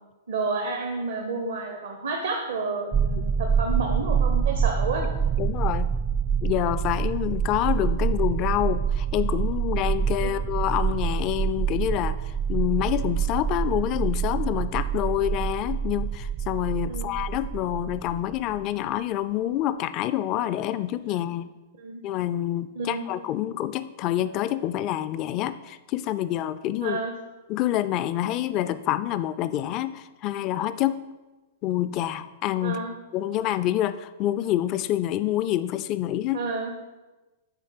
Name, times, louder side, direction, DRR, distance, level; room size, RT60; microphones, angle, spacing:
voice 1, 0.3-5.1 10.2-10.4 15.0-15.1 16.9-17.1 21.8-22.0 22.7-23.0 26.8-27.1 32.6-32.9 36.3-36.7, right 3 dB, 75° right, 3 dB, 0.9 m, -30 dB
sound 1, 2.9-18.6, right 7 dB, 25° right, 0.4 m, -26 dB
voice 2, 5.4-5.9 6.4-21.5 22.0-27.0 27.5-31.0 31.6-32.8 33.1-36.4, left 13 dB, 40° left, 14 dB, 0.3 m, -27 dB
8.2 x 3.4 x 6.6 m, 1.2 s
hypercardioid pair, 115°, 0 cm